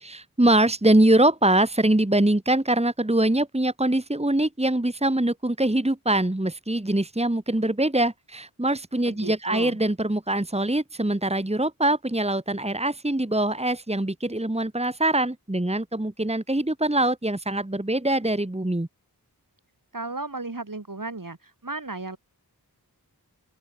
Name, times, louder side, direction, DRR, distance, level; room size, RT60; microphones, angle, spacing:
voice 1, 0.0-18.9, right 1 dB, 15° right, 2.1 m, -23 dB
voice 2, 9.1-9.8 19.9-22.2, right 3 dB, 55° right, 7.6 m, -34 dB
open air
wide cardioid pair, 45°, 38 cm